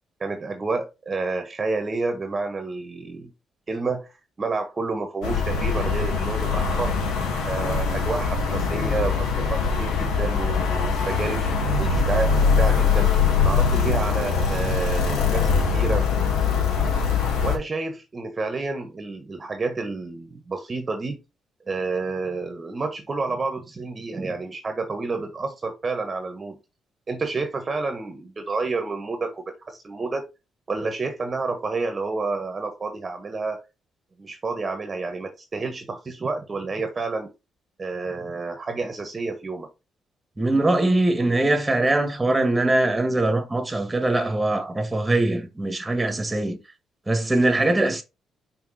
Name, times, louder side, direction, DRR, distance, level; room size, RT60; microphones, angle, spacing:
voice 1, 0.2-3.3 3.7-4.1 4.4-7.0 7.5-11.4 11.8-13.2 13.4-16.1 17.4-21.2 21.7-26.6 27.1-30.2 30.7-33.6 34.2-37.3 37.8-39.7, right 3 dB, 30° right, 1.3 m, -29 dB
sound 1, 5.2-17.6, left 5 dB, 90° left, 2.0 m, -22 dB
voice 2, 40.4-46.6 47.1-48.0, right 2 dB, 15° right, 1.7 m, -22 dB
5.9 x 4.3 x 4.2 m
cardioid pair, 90°, 0 cm